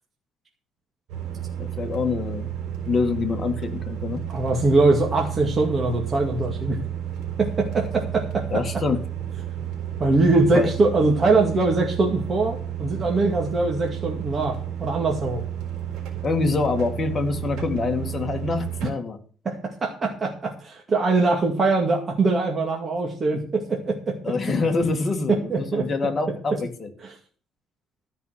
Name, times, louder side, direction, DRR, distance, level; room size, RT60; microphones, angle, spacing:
sound 1, 1.1-18.9, right 10 dB, 80° right, 4.2 m, -32 dB
voice 1, 1.6-2.5 2.9-4.2 8.5-9.0 10.5-10.7 16.2-19.2 24.2-26.9, left 4 dB, 30° left, 4 dB, 2.0 m, -25 dB
voice 2, 4.3-6.8 7.4-8.6 10.0-15.4 19.5-24.2 25.3-25.9, right 3 dB, 30° right, 0 dB, 2.1 m, -22 dB
13.0 x 5.7 x 7.7 m, 0.42 s
cardioid pair, 135°, 0 cm